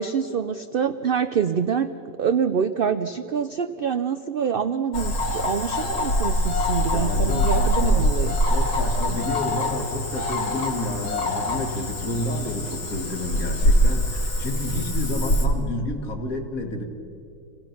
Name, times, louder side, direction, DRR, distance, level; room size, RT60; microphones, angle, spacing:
voice 1, 0.0-1.9 2.2-8.4, right 7 dB, 80° right, 10 dB, 0.5 m, -25 dB
Cricket / Frog, 4.9-15.5, left 1 dB, 80° left, 2.8 m, -24 dB
voice 2, 6.9-8.1 8.5-16.8, left 1 dB, 65° left, 4 dB, 2.3 m, -30 dB
26.5 x 17.0 x 5.9 m, 2.6 s
omnidirectional pair, 1.6 m